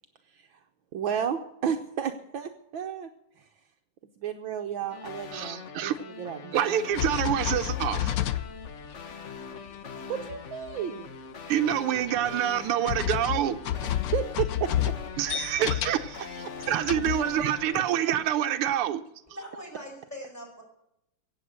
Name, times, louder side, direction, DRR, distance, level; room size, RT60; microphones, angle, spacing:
voice 1, 0.9-3.1 3.4-3.5 4.2-6.6 10.1-11.1 13.8-14.9, right 8 dB, 70° right, 6 dB, 1.6 m, -33 dB
sound 1, 4.9-18.3, left 5 dB, 45° left, 1.1 m, -42 dB
voice 2, 5.3-6.0 6.5-8.2 11.5-13.6 15.2-16.1 16.7-19.0, right 10 dB, 85° right, 10 dB, 1.7 m, -26 dB
sound 2, 6.9-9.1 9.7-9.8 10.3-10.4 10.6-10.7 12.1-12.2 12.9-16.2 16.6-17.8, left 11 dB, 70° left, 0.9 m, -30 dB
voice 3, 19.3-20.6, equal, 5° left, 2 dB, 5.4 m, -41 dB
16.0 x 8.2 x 8.0 m, 0.82 s
omnidirectional pair, 2.4 m